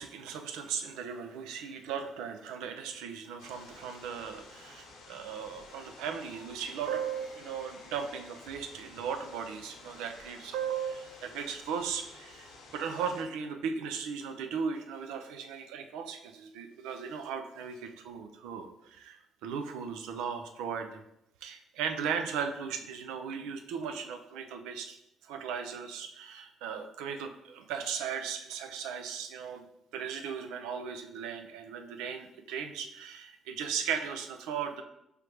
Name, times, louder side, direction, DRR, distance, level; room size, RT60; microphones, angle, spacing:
voice 1, 0.0-21.0 21.4-25.0 25.2-29.7 29.9-34.8, right 7 dB, 80° right, 6 dB, 0.4 m, -37 dB
sound 1, 3.4-13.2, left 3 dB, 80° left, 1.0 m, -52 dB
5.0 x 3.2 x 3.0 m, 0.82 s
hypercardioid pair, 55°, 0 cm